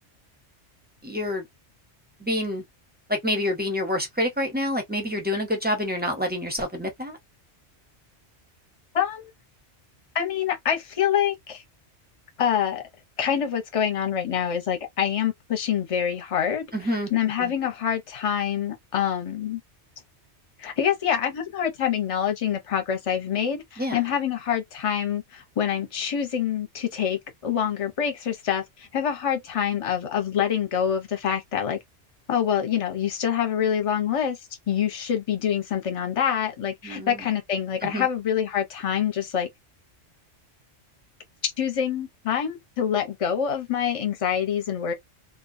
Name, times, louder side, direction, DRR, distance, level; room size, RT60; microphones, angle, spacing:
voice 1, 1.0-1.5 2.2-2.6 3.1-7.2 16.7-17.1 17.4-17.5 23.8-24.0 36.8-37.2 37.8-38.1, left 1 dB, 10° right, 0.6 m, -27 dB
voice 2, 8.9-9.3 10.1-11.6 12.4-12.8 13.2-19.6 20.6-31.8 32.3-34.4 34.7-39.5 41.4-44.9, left 9 dB, 35° left, 0.6 m, -26 dB
2.3 x 2.2 x 2.5 m
omnidirectional pair, 1.2 m